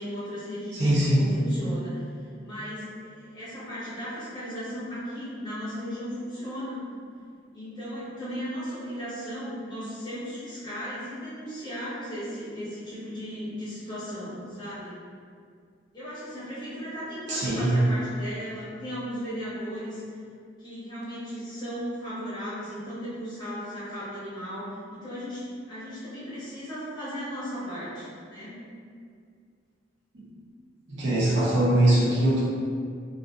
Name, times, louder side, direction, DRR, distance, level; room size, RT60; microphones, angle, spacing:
voice 1, 0.0-2.0 2.4-6.8 7.5-14.9 15.9-20.0 20.6-28.5, equal, 25° left, -12 dB, 0.9 m, -36 dB
voice 2, 0.7-1.3 17.3-17.8 30.1-30.2 30.9-32.4, right 1 dB, 65° right, -7 dB, 0.6 m, -22 dB
2.4 x 2.4 x 2.3 m, 2.2 s
head